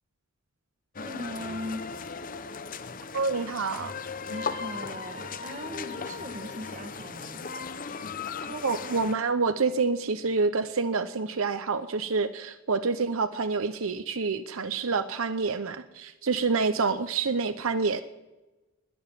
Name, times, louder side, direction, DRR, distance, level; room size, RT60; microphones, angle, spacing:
sound 1, 0.9-9.1, left 5 dB, 35° left, 0.7 m, -37 dB
voice 1, 1.0-1.9 4.3-7.5, equal, 35° right, 9 dB, 1.3 m, -39 dB
voice 2, 3.1-3.9 8.5-18.0, right 4 dB, 70° right, 10 dB, 0.7 m, -27 dB
20.5 x 7.1 x 9.8 m, 1.1 s
head